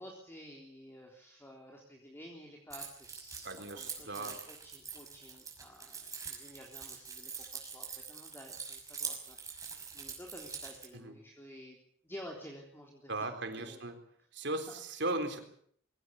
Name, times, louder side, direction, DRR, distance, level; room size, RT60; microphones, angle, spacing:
voice 1, 0.0-3.5 3.7-11.8 12.0-13.3 13.6-13.8 14.5-14.7, equal, 10° left, 0 dB, 3.5 m, -51 dB
Keys jangling, 2.7-10.9, right 5 dB, 15° right, 6.0 m, -44 dB
voice 2, 3.4-4.4 10.9-11.2 13.1-14.0 14.3-15.4, right 2 dB, 60° right, 7 dB, 4.0 m, -37 dB
23.0 x 17.5 x 8.7 m, 0.63 s
head